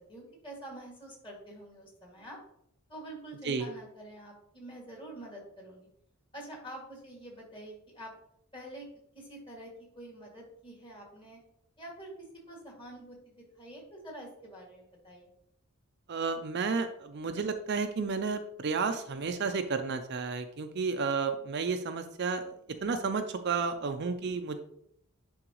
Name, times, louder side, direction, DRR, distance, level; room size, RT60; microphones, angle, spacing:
voice 1, 0.1-2.4 2.9-5.9 6.3-8.1 8.5-8.9 9.1-9.7 9.9-11.4 11.8-15.3, right 1 dB, 25° left, -2 dB, 2.1 m, -47 dB
voice 2, 16.1-24.6, right 4 dB, 50° right, 7 dB, 0.5 m, -32 dB
9.9 x 3.9 x 3.0 m, 0.73 s
head